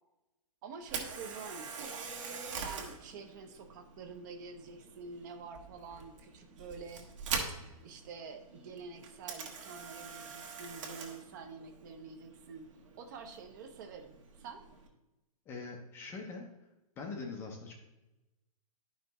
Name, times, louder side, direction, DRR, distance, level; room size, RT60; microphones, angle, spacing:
voice 1, 0.6-2.1 2.6-7.0 7.5-7.6 7.8-12.7 13.0-14.6, right 5 dB, 30° right, 6 dB, 0.6 m, -47 dB
Camera, 0.8-14.9, right 5 dB, 55° right, 1.5 m, -44 dB
voice 2, 15.5-16.5 17.0-17.7, left 4 dB, 10° left, 2 dB, 0.5 m, -42 dB
10.5 x 5.6 x 3.0 m, 0.99 s
hypercardioid pair, 165°, 20 cm